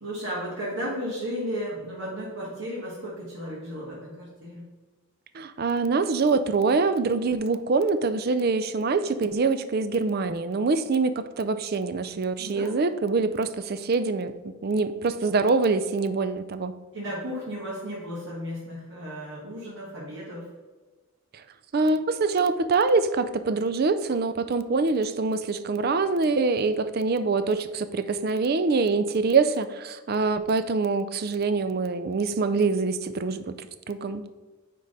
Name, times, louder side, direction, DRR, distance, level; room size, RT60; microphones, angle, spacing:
voice 1, 0.0-4.6 12.4-12.8 16.9-20.5, equal, 65° right, -7 dB, 1.9 m, -34 dB
voice 2, 5.3-16.7 21.3-21.4 21.7-34.2, right 4 dB, 45° right, 12 dB, 0.4 m, -25 dB
9.4 x 3.7 x 4.0 m, 1.3 s
head